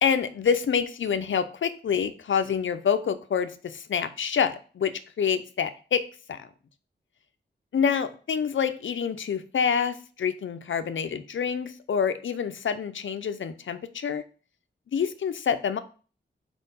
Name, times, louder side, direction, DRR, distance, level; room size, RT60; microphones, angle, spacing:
voice 1, 0.0-4.9 5.2-6.0 6.3-6.5 7.7-14.2 14.9-15.8, left 7 dB, 80° left, 10 dB, 0.6 m, -27 dB
4.5 x 4.4 x 5.4 m, 0.39 s
cardioid pair, 65°, 20 cm